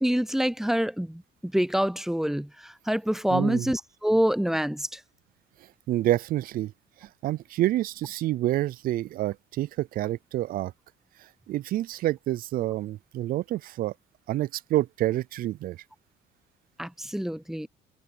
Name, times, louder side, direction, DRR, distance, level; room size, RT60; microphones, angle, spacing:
voice 1, 0.0-5.0 16.8-17.7, equal, ahead, 0.6 m, -26 dB
voice 2, 3.3-3.7 5.9-6.7 7.2-10.7 11.5-13.9 14.3-15.8, right 14 dB, 60° right, 0.4 m, -28 dB
cardioid pair, 110°, 17 cm